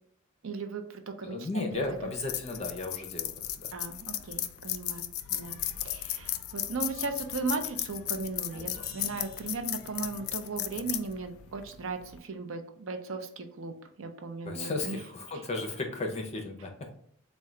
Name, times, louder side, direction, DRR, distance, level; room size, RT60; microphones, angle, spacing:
voice 1, 0.4-2.1 3.7-13.7 14.0-15.0 15.3-15.4, right 4 dB, 65° right, 6 dB, 0.5 m, -37 dB
voice 2, 1.2-3.7 14.4-16.9, left 2 dB, 30° left, 3 dB, 0.6 m, -35 dB
sound 1, 1.7-12.2, left 13 dB, 75° left, 0.3 m, -36 dB
sound 2, 8.5-10.2, equal, 40° right, 1.4 m, -50 dB
3.7 x 2.2 x 4.3 m, 0.64 s
head